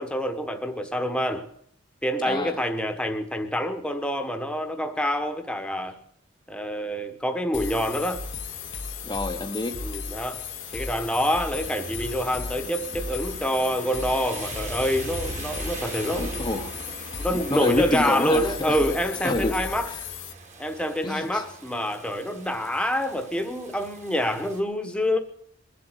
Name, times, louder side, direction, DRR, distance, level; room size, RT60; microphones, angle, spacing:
voice 1, 0.0-1.5 2.0-6.0 6.5-8.2 9.8-10.4 10.7-16.3 17.2-19.9 20.6-25.2, equal, 5° left, 8 dB, 1.2 m, -26 dB
voice 2, 2.2-2.6 9.0-9.9 16.2-16.8 17.3-18.8 19.2-20.0 21.0-21.4, left 1 dB, 20° left, 2 dB, 0.8 m, -28 dB
sound 1, 7.5-20.3, left 6 dB, 75° left, 0.9 m, -35 dB
Rain, 7.5-24.6, right 2 dB, 40° right, 2.2 m, -42 dB
22.0 x 7.7 x 8.0 m, 0.65 s
head